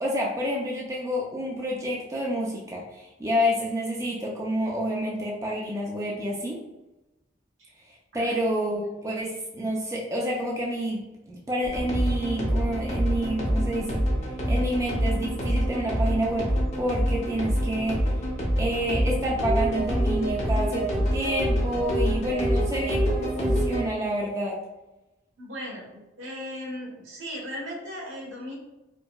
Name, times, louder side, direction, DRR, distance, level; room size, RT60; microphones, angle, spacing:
voice 1, 0.0-6.6 8.1-14.0 14.5-18.1 18.6-24.6, equal, 15° right, -3 dB, 0.4 m, -29 dB
sound 1, 11.6-23.8, equal, 35° left, 0.7 m, -26 dB
voice 2, 25.4-28.5, equal, 85° right, -4 dB, 1.2 m, -37 dB
4.4 x 2.1 x 2.3 m, 0.98 s
head